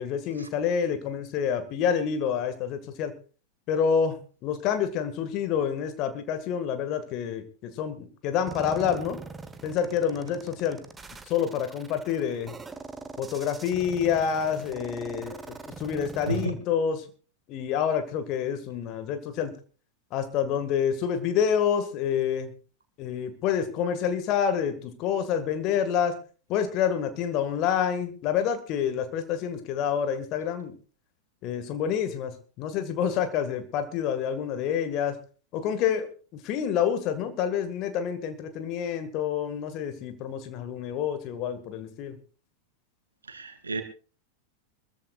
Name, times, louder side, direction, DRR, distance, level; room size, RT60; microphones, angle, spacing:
voice 1, 0.0-3.1 3.7-4.2 4.4-9.2 9.6-10.8 11.3-12.5 13.2-17.0 17.5-19.5 20.1-22.5 23.0-26.2 26.5-30.7 31.4-35.2 35.5-42.2, left 8 dB, 40° left, 9 dB, 1.9 m, -28 dB
sound 1, 8.5-16.5, right 3 dB, 15° right, 1.2 m, -42 dB
voice 2, 43.3-43.8, right 4 dB, 75° right, 8 dB, 2.0 m, -32 dB
24.5 x 14.5 x 2.5 m, 0.37 s
figure-of-eight pair, 90°, 0 cm